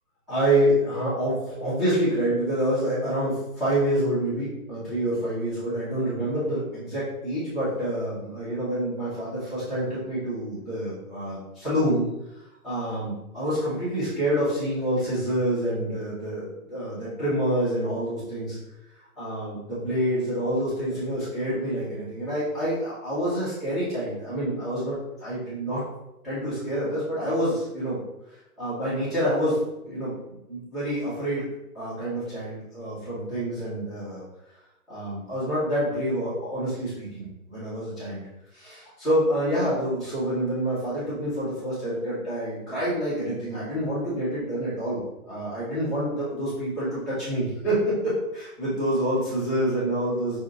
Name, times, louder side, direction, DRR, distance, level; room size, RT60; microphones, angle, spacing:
voice 1, 0.3-12.1 12.6-18.6 19.2-25.8 26.2-28.0 28.6-29.6 29.8-30.1 30.5-31.4 31.7-34.2 34.9-38.2 38.5-50.4, equal, ahead, -15 dB, 0.7 m, -27 dB
5.4 x 2.5 x 3.7 m, 0.89 s
hypercardioid pair, 160°, 45 cm